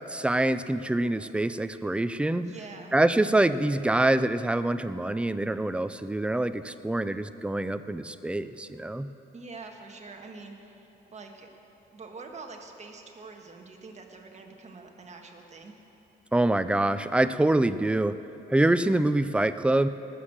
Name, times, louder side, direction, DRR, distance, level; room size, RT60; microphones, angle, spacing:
voice 1, 0.0-2.5 2.9-9.1 16.3-18.2 18.5-19.9, right 1 dB, 5° right, 12 dB, 0.4 m, -25 dB
voice 2, 2.4-2.9 9.3-11.5 11.9-15.7, right 3 dB, 35° right, 2 dB, 1.6 m, -45 dB
18.5 x 6.5 x 7.5 m, 2.9 s
cardioid pair, 90°, 20 cm